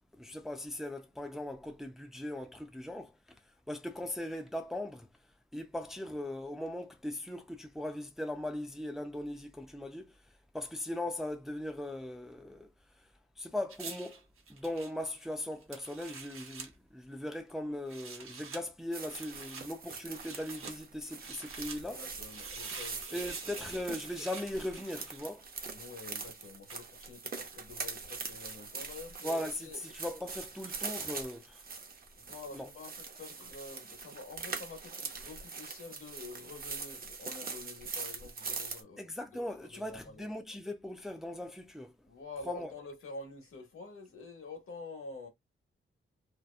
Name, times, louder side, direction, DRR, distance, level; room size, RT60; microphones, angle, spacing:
voice 1, 0.1-5.1 5.5-10.2 10.5-12.7 13.0-13.1 13.4-22.0 23.1-25.4 29.2-31.6 32.5-32.7 39.0-42.1 42.5-42.7, left 1 dB, ahead, 0.3 m, -39 dB
sound 1, 13.7-16.7 17.7-18.6 19.0-19.7 20.1-20.8 21.2-21.8 22.3-25.5 26.7-26.9, right 5 dB, 85° right, 0.8 m, -46 dB
sound 2, 18.9-38.8, right 4 dB, 45° right, 0.6 m, -43 dB
voice 2, 21.8-23.6 25.7-29.8 32.1-40.3 42.1-45.3, left 3 dB, 90° left, 1.0 m, -48 dB
2.7 x 2.1 x 2.3 m
wide cardioid pair, 175°, 21 cm